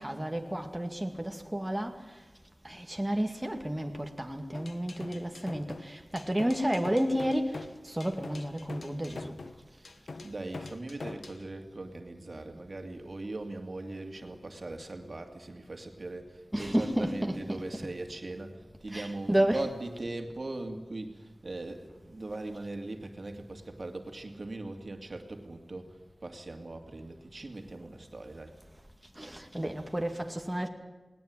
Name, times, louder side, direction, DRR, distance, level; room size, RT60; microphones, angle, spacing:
voice 1, 0.0-2.2 2.6-9.3 16.5-17.6 18.9-19.6 29.2-30.7, right 1 dB, 15° right, 4 dB, 2.1 m, -31 dB
sound 1, 4.5-11.4, left 3 dB, 80° left, 1.0 m, -44 dB
voice 2, 9.7-28.6, right 2 dB, 55° right, 5 dB, 2.5 m, -40 dB
19.5 x 18.5 x 9.0 m, 1.2 s
wide cardioid pair, 55°, 0 cm